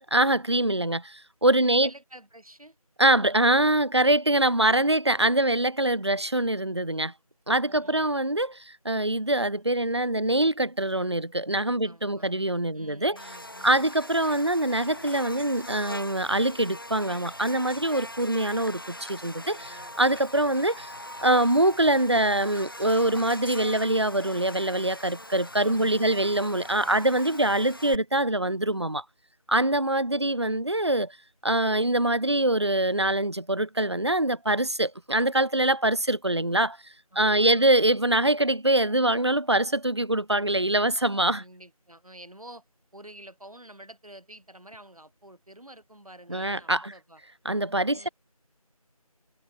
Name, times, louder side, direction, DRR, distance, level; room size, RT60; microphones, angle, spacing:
voice 1, 0.1-1.9 3.0-7.1 7.5-13.2 13.6-20.9 21.2-29.0 29.5-31.1 31.4-36.8 37.2-41.4 46.3-46.9 47.5-48.1, right 1 dB, 45° right, 0.4 m, -24 dB
voice 2, 1.6-2.8 7.7-8.2 11.8-12.3 12.7-13.9 19.4-20.0 25.6-26.4 26.8-27.1 37.1-37.7 41.4-42.6 42.9-47.2 47.9-48.1, right 1 dB, 70° right, 3.1 m, -49 dB
Buzz, 13.2-28.0, left 1 dB, 35° left, 1.5 m, -42 dB
figure-of-eight pair, 175°, 19 cm